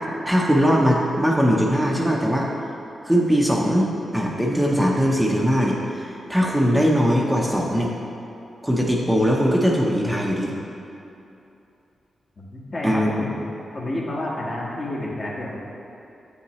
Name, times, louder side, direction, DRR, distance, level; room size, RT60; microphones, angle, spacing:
voice 1, 0.3-2.5 3.1-7.9 8.6-10.5 12.8-13.1, equal, 5° right, -2 dB, 0.8 m, -20 dB
voice 2, 12.4-13.5 13.7-15.6, left 1 dB, 45° left, -4 dB, 1.5 m, -30 dB
7.8 x 5.5 x 3.1 m, 2.8 s
cardioid pair, 50°, 0 cm